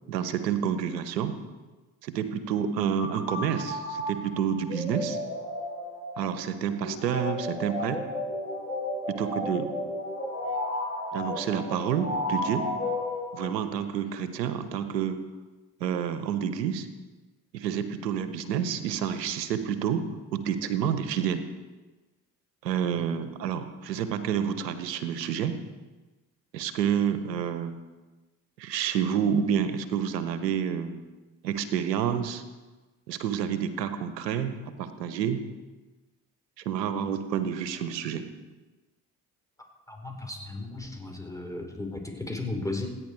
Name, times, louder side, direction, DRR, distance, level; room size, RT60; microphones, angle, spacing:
voice 1, 0.1-1.3 2.0-5.2 6.2-8.0 9.1-9.7 11.1-12.7 13.3-15.2 15.8-16.9 17.5-20.1 20.3-21.4 22.6-25.6 26.5-27.8 28.6-31.0 31.4-32.4 33.1-35.4 36.6-38.2, right 8 dB, 80° right, 11 dB, 1.3 m, -29 dB
sound 1, 3.0-13.7, left 1 dB, 30° left, 7.1 m, -33 dB
voice 2, 39.9-42.9, left 2 dB, 5° left, 2 dB, 5.1 m, -35 dB
28.0 x 9.7 x 4.8 m, 1.2 s
figure-of-eight pair, 45°, 49 cm